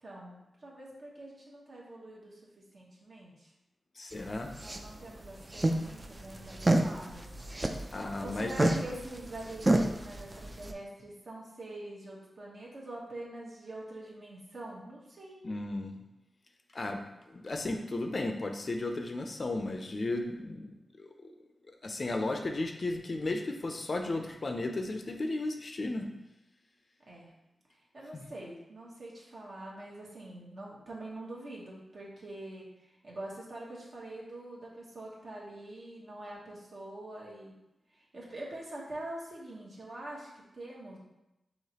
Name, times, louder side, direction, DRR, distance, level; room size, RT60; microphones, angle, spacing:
voice 1, 0.0-2.4 2.7-3.5 4.5-7.3 8.2-15.4 22.2-22.5 27.1-27.3 27.9-37.5 37.9-41.0, right 1 dB, 55° right, -3 dB, 1.1 m, -45 dB
voice 2, 4.0-4.6 7.9-8.8 15.4-16.0 16.7-20.7 21.0-21.3 21.8-26.1 28.1-28.3, left 2 dB, 45° left, 4 dB, 0.4 m, -34 dB
sound 1, 4.1-10.7, right 1 dB, 25° right, 0.3 m, -31 dB
4.8 x 2.9 x 2.9 m, 0.94 s
wide cardioid pair, 100°, 0 cm